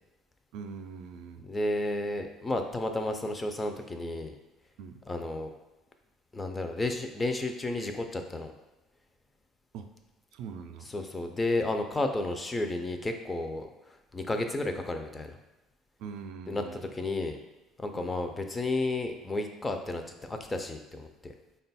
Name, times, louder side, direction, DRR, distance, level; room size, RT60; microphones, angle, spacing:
voice 1, 0.5-1.5 4.8-5.0 9.7-9.9 10.3-10.9 16.0-16.8 17.9-18.1, right 6 dB, 75° right, 7 dB, 0.3 m, -42 dB
voice 2, 1.4-4.3 5.1-5.5 6.3-8.5 10.9-15.4 16.5-16.6 16.9-17.4 17.8-21.3, left 2 dB, 15° left, 5 dB, 0.3 m, -32 dB
3.7 x 2.2 x 4.0 m, 1.0 s
cardioid pair, 135°, 0 cm